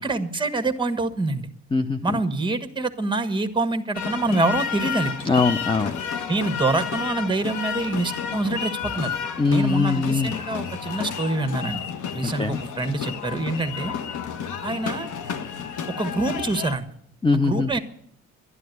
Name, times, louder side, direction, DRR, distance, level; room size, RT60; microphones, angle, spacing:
voice 1, 0.0-1.5 2.0-5.1 6.3-9.1 9.5-11.9 12.1-14.0 14.6-15.1 16.0-16.9 17.3-17.8, right 2 dB, 15° right, 8 dB, 1.5 m, -26 dB
voice 2, 1.7-2.2 5.2-6.0 9.4-10.3 12.2-12.6 17.2-17.7, left 4 dB, 15° left, 9 dB, 0.6 m, -22 dB
sound 1, 3.9-16.8, left 7 dB, 75° left, 1.3 m, -31 dB
12.5 x 10.5 x 9.4 m, 0.71 s
cardioid pair, 90°, 30 cm